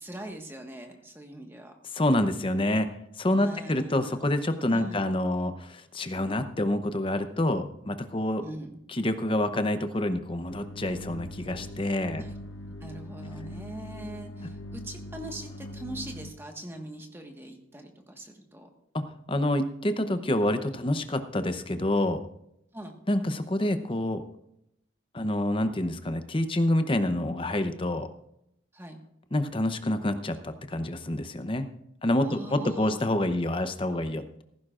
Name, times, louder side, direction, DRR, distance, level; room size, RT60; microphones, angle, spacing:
voice 1, 0.0-1.7 3.3-4.4 4.7-5.2 8.4-8.8 12.2-12.3 12.8-18.7 22.7-23.0 28.7-29.0 32.2-33.0, right 1 dB, 10° right, 3 dB, 1.5 m, -41 dB
voice 2, 1.9-2.9 3.2-8.4 8.9-12.2 18.9-19.0 19.3-22.2 23.1-24.2 25.1-28.1 29.3-31.7 32.0-34.4, left 1 dB, 25° left, 9 dB, 0.8 m, -27 dB
sound 1, 10.5-16.3, left 1 dB, 85° left, 1.0 m, -41 dB
16.0 x 14.5 x 2.5 m, 0.79 s
head